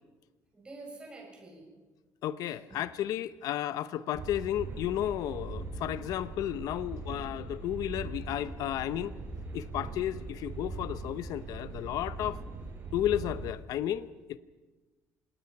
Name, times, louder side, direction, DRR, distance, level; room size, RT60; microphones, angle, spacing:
voice 1, 0.5-1.7 2.7-3.0, right 2 dB, 15° right, 0 dB, 7.1 m, -47 dB
voice 2, 2.2-9.1 9.5-12.4 12.9-14.4, left 12 dB, 70° left, 14 dB, 0.7 m, -33 dB
sound 1, 4.1-13.5, right 3 dB, 35° right, 6.0 m, -40 dB
26.5 x 19.0 x 5.9 m, 1.3 s
cardioid pair, 145°, 6 cm